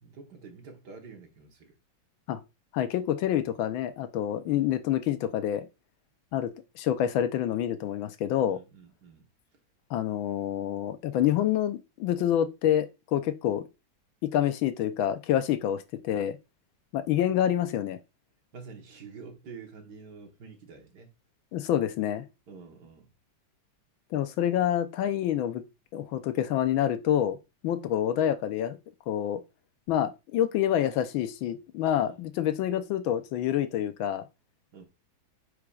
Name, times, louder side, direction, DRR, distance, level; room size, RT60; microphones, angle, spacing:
voice 1, 0.0-1.7 4.4-4.7 8.5-9.3 18.5-21.1 22.5-23.1 32.0-32.2 34.7-34.8, right 5 dB, 60° right, 1.8 m, -48 dB
voice 2, 2.7-5.7 6.3-8.6 9.9-13.6 14.2-16.4 16.9-18.0 21.5-22.2 24.1-25.6 25.9-27.4 27.6-28.8 29.1-29.4 29.9-34.2, left 11 dB, 85° left, 1.5 m, -27 dB
8.5 x 4.9 x 2.4 m
omnidirectional pair, 2.1 m